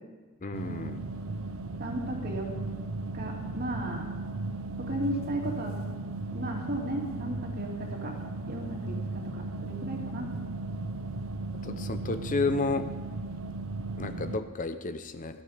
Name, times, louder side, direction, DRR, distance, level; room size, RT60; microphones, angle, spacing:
voice 1, 0.4-1.0 11.6-12.9 14.0-15.4, left 3 dB, 40° left, 9 dB, 0.7 m, -31 dB
sound 1, 0.5-14.4, right 2 dB, 90° right, 0.9 m, -36 dB
voice 2, 1.8-2.5 3.1-4.1 4.8-5.8 6.3-8.1 8.5-10.3, right 1 dB, 50° right, 0 dB, 2.8 m, -35 dB
16.5 x 13.5 x 5.1 m, 1.4 s
head